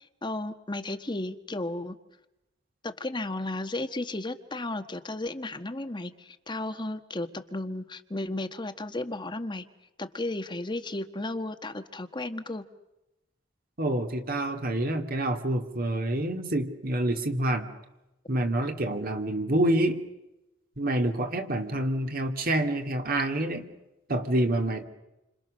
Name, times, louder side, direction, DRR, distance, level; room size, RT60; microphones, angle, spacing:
voice 1, 0.2-2.0 2.8-9.6 10.0-12.6, left 2 dB, 25° left, 9 dB, 1.4 m, -34 dB
voice 2, 13.8-17.7 18.3-20.0 20.8-23.7 24.1-24.8, right 1 dB, 50° right, 4 dB, 2.3 m, -27 dB
29.0 x 26.0 x 6.5 m, 0.94 s
head